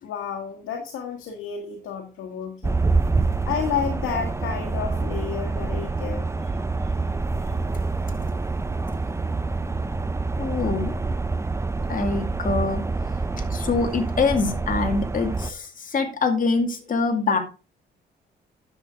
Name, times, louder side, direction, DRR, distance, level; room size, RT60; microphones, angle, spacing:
voice 1, 0.0-2.8 3.5-6.5, left 7 dB, 85° left, 3 dB, 1.6 m, -31 dB
sound 1, 2.6-15.5, right 3 dB, 15° right, 0.6 m, -26 dB
voice 2, 10.4-10.9 11.9-12.8 13.5-17.4, left 4 dB, 45° left, 4 dB, 2.3 m, -24 dB
10.0 x 6.7 x 3.8 m, 0.33 s
cardioid pair, 90°, 20 cm